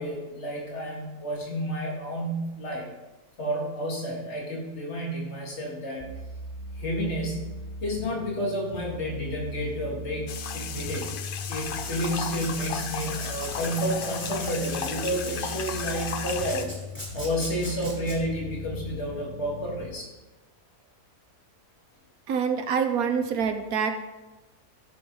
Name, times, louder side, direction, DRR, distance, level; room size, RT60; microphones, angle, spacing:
voice 1, 0.0-2.9 3.4-6.1 6.8-7.4 7.8-10.3 10.5-11.1 11.5-16.7 17.1-20.1, equal, 45° left, -2 dB, 2.3 m, -30 dB
sound 1, 6.0-19.9, equal, 30° right, 1.1 m, -39 dB
sound 2, 10.3-16.6, left 7 dB, 70° left, 0.5 m, -35 dB
Writing, 11.4-18.1, equal, 5° left, 3.1 m, -41 dB
voice 2, 22.3-23.9, right 6 dB, 70° right, 6 dB, 1.4 m, -26 dB
15.5 x 6.6 x 4.0 m, 1.1 s
omnidirectional pair, 1.6 m